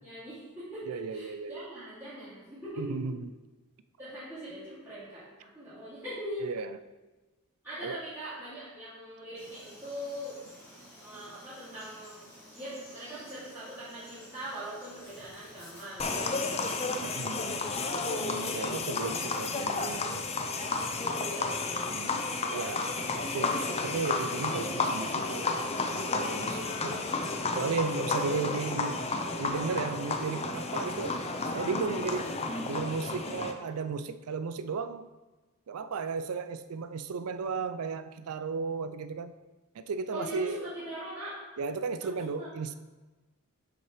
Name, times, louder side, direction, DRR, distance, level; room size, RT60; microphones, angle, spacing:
voice 1, 0.0-3.1 4.0-6.5 7.6-10.4 11.0-12.3 12.6-16.8 18.3-18.7 21.0-21.9 22.4-22.8 40.1-41.4 42.0-42.1 42.4-42.5, equal, 10° right, -15 dB, 2.5 m, -41 dB
voice 2, 0.9-1.7 2.8-3.3 6.4-6.8 7.8-8.0 17.0-17.7 18.2-20.5 21.8-22.9 23.2-29.0 29.4-31.2 31.5-32.3 32.7-35.1 35.7-39.3 39.7-40.7 41.6-42.7, right 5 dB, 75° right, 12 dB, 0.4 m, -35 dB
Frog, 9.3-17.6, equal, 10° left, 2.2 m, -52 dB
sound 1, 16.0-33.5, left 3 dB, 30° left, 0.5 m, -32 dB
7.3 x 6.2 x 3.2 m, 1.2 s
head